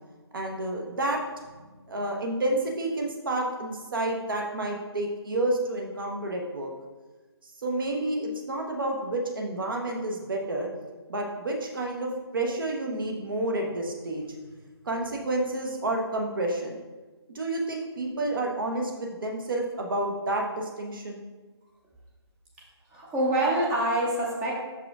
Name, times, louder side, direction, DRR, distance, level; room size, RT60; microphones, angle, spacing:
voice 1, 0.3-1.2 1.5-1.6 1.9-6.7 7.4-10.7 11.1-14.3 14.8-16.8 17.3-21.2, right 2 dB, 50° right, 1 dB, 1.2 m, -30 dB
voice 2, 22.9-24.6, right 1 dB, 10° right, -4 dB, 0.7 m, -26 dB
6.0 x 4.8 x 3.6 m, 1.2 s
figure-of-eight pair, 160°, 14 cm